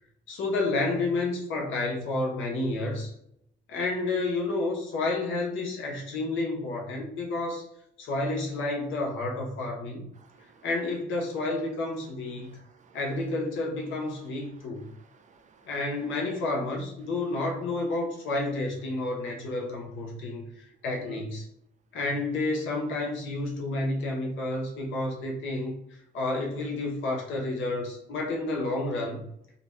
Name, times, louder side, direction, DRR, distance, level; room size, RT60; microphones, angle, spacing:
voice 1, 0.3-3.1 3.7-7.6 8.0-10.1 10.6-12.6 12.9-14.8 15.7-21.5 21.9-29.3, left 2 dB, 75° left, -1 dB, 0.8 m, -30 dB
voice 2, 10.2-10.7 12.3-13.0 14.2-15.7 20.2-20.3 21.0-21.3, right 6 dB, 40° right, 6 dB, 0.4 m, -52 dB
2.5 x 2.2 x 3.2 m, 0.75 s
cardioid pair, 90°, 20 cm